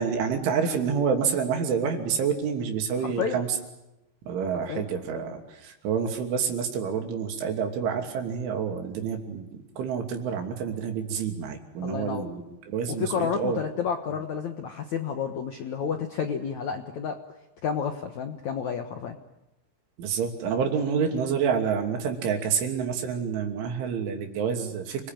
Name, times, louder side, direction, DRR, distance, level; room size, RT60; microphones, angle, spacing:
voice 1, 0.0-3.5 4.3-13.6 20.0-25.1, right 6 dB, 85° right, 4 dB, 5.3 m, -28 dB
voice 2, 3.0-3.4 4.7-4.9 11.8-12.3 12.9-17.2 17.6-19.2, left 7 dB, 75° left, 6 dB, 1.7 m, -30 dB
29.0 x 21.0 x 9.2 m, 0.95 s
omnidirectional pair, 5.4 m